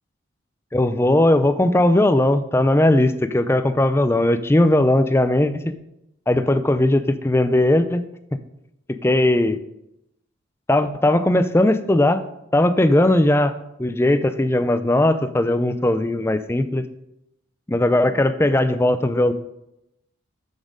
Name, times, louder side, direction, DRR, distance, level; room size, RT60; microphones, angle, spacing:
voice 1, 0.7-5.7 6.3-8.0 8.9-9.6 10.7-12.2 12.5-13.5 13.8-16.8 17.7-19.3, left 1 dB, 10° left, 12 dB, 0.4 m, -18 dB
7.3 x 7.3 x 5.1 m, 0.85 s
head